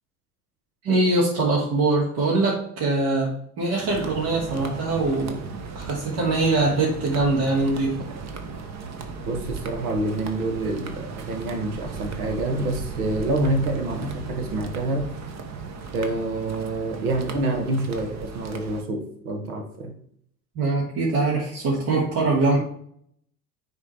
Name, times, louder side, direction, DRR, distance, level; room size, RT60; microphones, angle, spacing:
voice 1, 0.8-3.3 3.6-5.4 5.7-8.1 20.5-22.6, right 3 dB, 55° right, -5 dB, 2.7 m, -22 dB
sound 1, 3.9-18.8, right 4 dB, 35° right, 1.2 m, -36 dB
voice 2, 9.3-15.1 15.9-19.9, right 2 dB, 75° right, 5 dB, 1.8 m, -27 dB
9.6 x 3.8 x 4.6 m, 0.66 s
hypercardioid pair, 75°, 44 cm